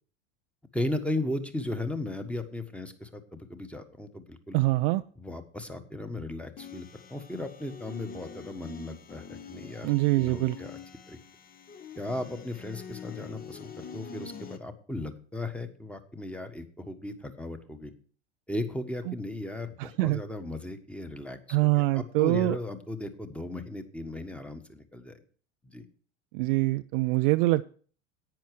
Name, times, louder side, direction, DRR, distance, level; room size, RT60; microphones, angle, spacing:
voice 1, 0.7-4.6 5.2-10.8 11.1-11.2 12.0-17.9 18.5-25.2 25.6-25.8, left 1 dB, 5° left, 8 dB, 1.4 m, -36 dB
voice 2, 4.5-5.0 9.8-10.6 19.8-20.2 21.5-22.6 26.3-27.6, right 20 dB, 45° right, 12 dB, 0.5 m, -24 dB
sound 1, 6.6-14.6, left 6 dB, 25° left, 1.1 m, -45 dB
10.5 x 9.1 x 4.8 m, 0.43 s
hypercardioid pair, 90°, 36 cm